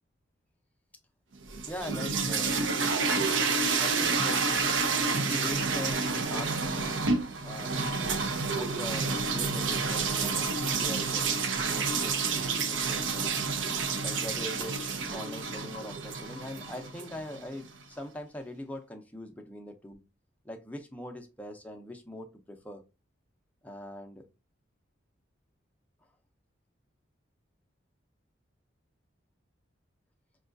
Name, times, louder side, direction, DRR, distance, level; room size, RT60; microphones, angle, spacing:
sound 1, 1.4-17.5, right 4 dB, 75° right, 0.6 m, -29 dB
voice 1, 1.7-2.7 3.8-4.5 5.3-7.0 7.4-13.4 14.0-20.0 20.4-22.8 23.6-24.3, left 1 dB, 10° left, 0.5 m, -42 dB
5.4 x 2.3 x 2.5 m
head